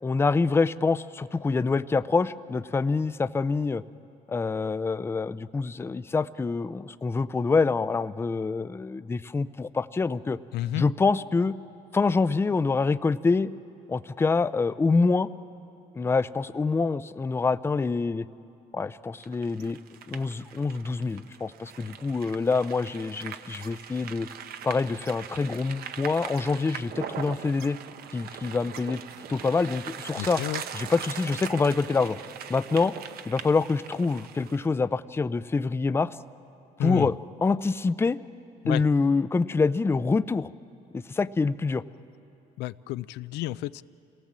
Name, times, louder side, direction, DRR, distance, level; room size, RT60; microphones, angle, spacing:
voice 1, 0.0-3.8 4.3-10.4 10.8-11.6 11.9-13.5 13.9-15.3 16.0-18.3 18.7-19.8 20.1-24.3 24.6-27.8 28.1-29.0 29.3-30.4 30.7-32.2 32.5-32.9 33.3-36.2 36.8-37.1 37.4-38.2 38.7-40.5 40.9-41.8, left 4 dB, 15° left, 14 dB, 0.4 m, -26 dB
voice 2, 10.5-10.8 30.2-30.6 36.8-37.1 38.6-38.8 42.6-43.8, left 16 dB, 80° left, 15 dB, 0.4 m, -31 dB
sound 1, 19.2-34.7, right 8 dB, 65° right, 0.9 m, -41 dB
27.0 x 18.0 x 7.4 m, 2.7 s
cardioid pair, 110°, 17 cm